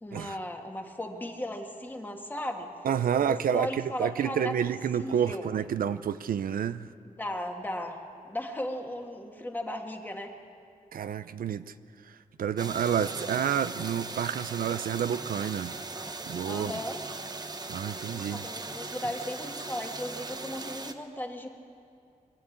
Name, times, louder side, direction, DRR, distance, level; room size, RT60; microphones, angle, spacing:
voice 1, 0.0-2.7 3.3-4.5 5.0-5.5 7.0-10.3 13.1-13.4 16.5-17.0 18.1-21.5, left 1 dB, 15° left, 2 dB, 1.7 m, -36 dB
voice 2, 2.8-6.9 10.9-11.7 12.1-15.7 16.3-16.7 17.7-18.4, right 8 dB, 85° right, 12 dB, 0.6 m, -29 dB
sound 1, 12.6-20.9, right 3 dB, 30° right, 0.9 m, -39 dB
23.5 x 13.0 x 8.6 m, 2.4 s
wide cardioid pair, 150°, 14 cm